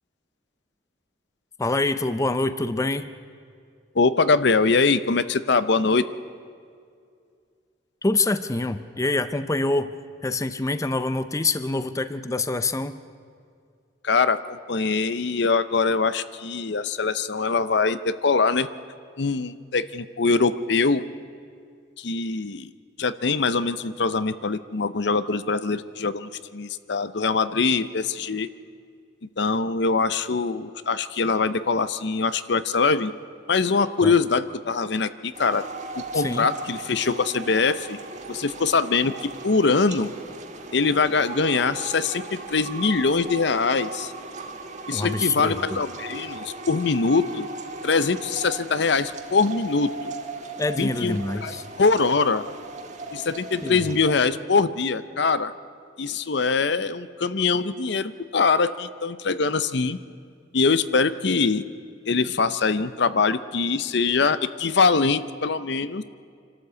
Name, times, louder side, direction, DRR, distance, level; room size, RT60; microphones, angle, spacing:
voice 1, 1.6-3.1 8.0-9.9 10.2-13.0 34.0-34.1 36.1-36.5 44.9-45.8 50.6-51.6 53.6-53.8, left 2 dB, 15° left, 12 dB, 0.5 m, -25 dB
voice 2, 3.9-6.1 14.0-18.7 19.2-21.0 22.0-22.7 23.0-28.5 29.4-33.1 33.5-35.6 35.9-38.0 38.3-40.1 40.7-44.1 44.9-47.5 47.8-50.1 50.8-52.4 53.1-55.5 56.0-60.0 60.5-61.6 62.1-66.0, left 4 dB, 65° left, 14 dB, 0.7 m, -23 dB
sound 1, 35.3-54.1, right 2 dB, 40° right, 1.5 m, -37 dB
26.0 x 13.0 x 8.2 m, 2.3 s
head